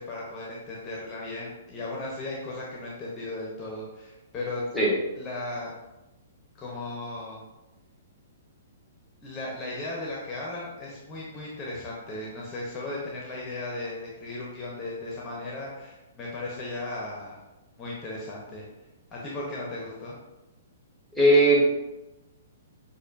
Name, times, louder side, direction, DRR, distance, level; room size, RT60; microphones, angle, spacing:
voice 1, 0.0-4.7 5.1-5.7 6.6-7.4 9.2-17.4 17.8-18.6 19.1-20.2, left 2 dB, 20° left, -4 dB, 0.9 m, -36 dB
voice 2, 21.1-21.6, right 1 dB, 5° right, -5 dB, 1.4 m, -18 dB
6.4 x 2.6 x 2.6 m, 1.0 s
figure-of-eight pair, 115°, 0 cm